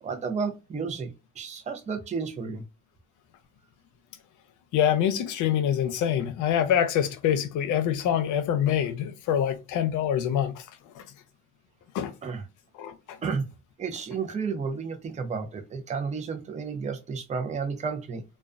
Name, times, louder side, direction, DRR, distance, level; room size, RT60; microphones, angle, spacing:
voice 1, 0.0-2.6 12.2-12.4 13.2-13.5 13.8-18.2, right 5 dB, 25° right, 0.5 m, -32 dB
voice 2, 4.7-10.7 10.9-11.0 11.9-12.1 12.7-13.2, left 9 dB, 85° left, 0.5 m, -25 dB
2.3 x 2.2 x 2.4 m
cardioid pair, 90°, 30 cm